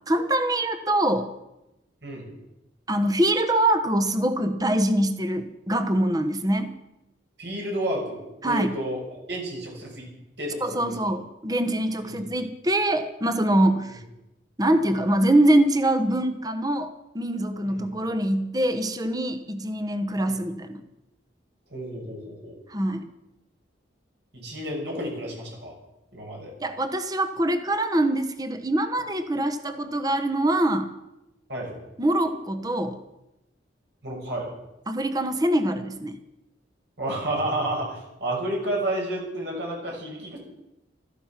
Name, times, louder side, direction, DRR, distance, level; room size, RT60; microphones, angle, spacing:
voice 1, 0.1-1.3 2.9-6.7 8.4-8.7 10.6-14.0 14.6-16.9 17.1-20.8 22.7-23.1 26.6-30.9 32.0-33.0 34.9-36.2, right 1 dB, 20° right, 9 dB, 1.1 m, -24 dB
voice 2, 7.4-9.0 9.3-10.1 10.4-10.9 12.0-12.3 17.6-17.8 20.3-20.4 21.7-22.6 24.3-25.8 26.1-26.5 31.5-31.7 34.0-34.5 37.0-40.4, right 1 dB, 70° right, -1 dB, 6.2 m, -31 dB
15.5 x 13.5 x 5.9 m, 0.93 s
head